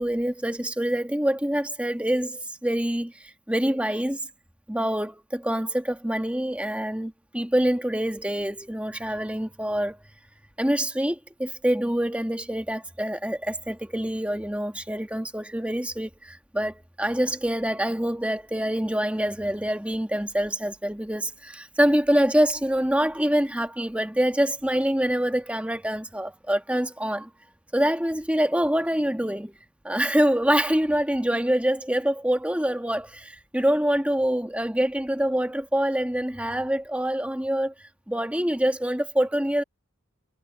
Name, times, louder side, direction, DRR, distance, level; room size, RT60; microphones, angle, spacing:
voice 1, 0.0-4.2 4.7-10.0 10.6-27.3 27.7-29.5 29.8-39.6, equal, 5° right, 1.4 m, -25 dB
head